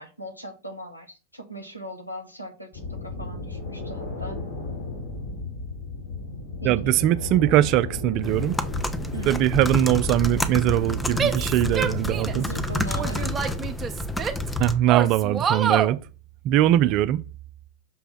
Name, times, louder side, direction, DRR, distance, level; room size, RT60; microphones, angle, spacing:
voice 1, 0.0-4.4 6.6-7.0 9.1-9.4 12.3-13.5 16.8-17.0, right 2 dB, 90° left, 1.6 m, -38 dB
sound 1, 2.7-13.1, left 3 dB, 55° left, 3.3 m, -35 dB
voice 2, 6.6-8.6 9.3-12.4 14.6-16.0 16.4-17.2, right 13 dB, 40° right, 0.4 m, -21 dB
sound 2, 8.2-14.8, left 1 dB, 10° left, 0.7 m, -29 dB
Female speech woman speaking / Yell, 11.2-12.5 13.0-14.5 14.9-15.9, right 7 dB, 20° right, 0.9 m, -27 dB
6.1 x 3.4 x 5.9 m
figure-of-eight pair, 90°, 0 cm